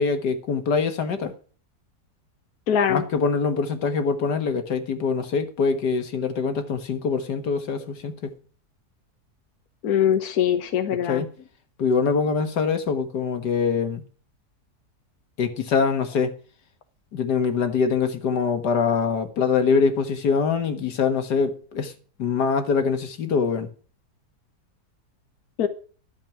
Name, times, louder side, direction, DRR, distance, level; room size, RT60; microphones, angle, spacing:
voice 1, 0.0-1.3 2.9-8.4 11.1-11.3 11.8-14.1 15.4-16.3 17.1-21.9 22.2-23.7, left 5 dB, 85° left, 2.1 m, -24 dB
voice 2, 2.7-3.0 9.8-11.2 25.6-25.7, left 9 dB, 65° left, 1.5 m, -22 dB
12.0 x 7.3 x 5.9 m
omnidirectional pair, 1.7 m